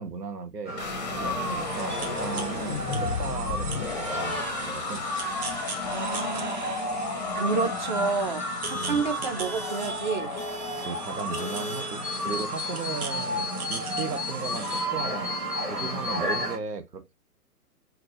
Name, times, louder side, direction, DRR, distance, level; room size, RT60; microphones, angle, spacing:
voice 1, 0.0-5.0 8.7-9.0 10.8-15.3 15.7-17.1, right 4 dB, 85° right, 0.7 m, -36 dB
sound 1, 0.6-16.6, equal, 15° right, 0.8 m, -33 dB
sound 2, 0.8-12.8, left 6 dB, 30° left, 0.5 m, -35 dB
sound 3, 1.4-14.9, right 5 dB, 65° right, 1.0 m, -41 dB
voice 2, 5.8-6.8 7.3-10.4, right 5 dB, 30° right, 0.5 m, -30 dB
3.9 x 2.2 x 2.5 m
figure-of-eight pair, 120°, 47 cm